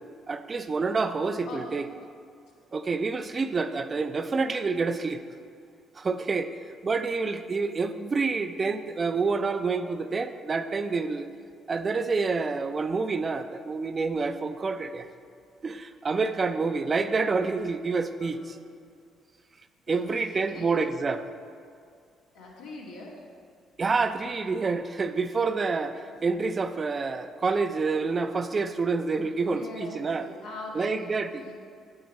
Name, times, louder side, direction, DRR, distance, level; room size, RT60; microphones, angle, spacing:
voice 1, 0.3-1.8 2.7-5.2 6.0-6.6 6.8-11.3 11.7-15.1 15.6-18.4 19.9-21.2 23.8-30.3 30.7-31.5, right 4 dB, 40° right, 9 dB, 0.5 m, -28 dB
voice 2, 1.5-1.8 18.2-18.6 19.9-20.8 22.3-23.2 26.1-26.2 29.4-31.0 31.4-31.5, left 2 dB, 90° left, -5 dB, 1.9 m, -42 dB
8.7 x 8.4 x 4.1 m, 2.3 s
hypercardioid pair, 60°, 0 cm